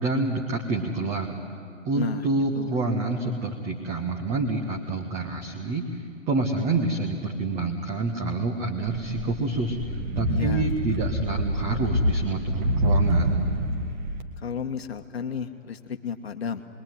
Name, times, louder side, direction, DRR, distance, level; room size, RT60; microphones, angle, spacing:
voice 1, 0.0-1.4 1.8-9.8 10.1-13.4, right 3 dB, 15° right, 1 dB, 1.6 m, -27 dB
voice 2, 1.9-2.3 2.5-2.7 10.3-10.7 14.4-16.6, left 7 dB, 50° left, 6 dB, 1.4 m, -32 dB
sound 1, 8.8-14.2, equal, 35° right, 2.1 m, -26 dB
28.0 x 22.0 x 9.5 m, 2.3 s
figure-of-eight pair, 135°, 39 cm